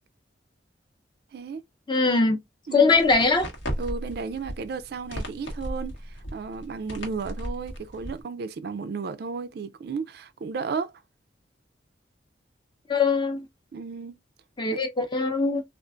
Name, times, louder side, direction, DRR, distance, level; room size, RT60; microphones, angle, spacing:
voice 1, 1.9-2.4 2.7-3.5 12.9-13.5 14.6-15.6, left 4 dB, 25° left, 0.6 m, -21 dB
voice 2, 2.7-3.0 3.8-10.9 13.7-14.1 14.7-14.8, right 5 dB, 55° right, 0.3 m, -34 dB
sound 1, 2.9-8.2, equal, 90° left, 1.2 m, -36 dB
3.7 x 2.4 x 2.3 m
head